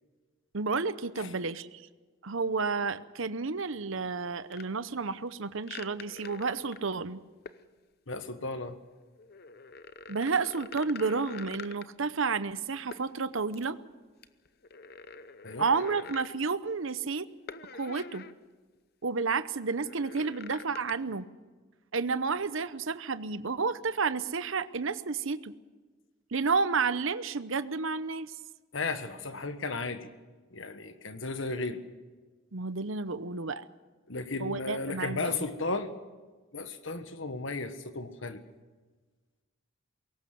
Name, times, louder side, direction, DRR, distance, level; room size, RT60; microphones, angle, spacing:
voice 1, 0.5-1.9 2.2-7.2 10.1-13.8 15.6-17.3 17.7-18.3 19.0-21.3 21.9-25.5 26.3-28.3 32.5-33.6 34.4-35.5, right 4 dB, 65° right, 14 dB, 0.8 m, -31 dB
sound 1, 4.5-4.6 5.6-6.9 7.5-7.6 9.1-12.1 12.9-13.1 13.5-13.7 14.2-16.3 17.5-18.4 18.8-18.9 19.7-20.9, left 5 dB, 45° left, 0.8 m, -45 dB
voice 2, 8.1-8.8 15.4-15.7 28.7-30.1 30.5-31.8 34.1-35.9 36.5-38.4, left 3 dB, 60° left, 9 dB, 1.5 m, -35 dB
21.5 x 18.0 x 7.8 m, 1.3 s
head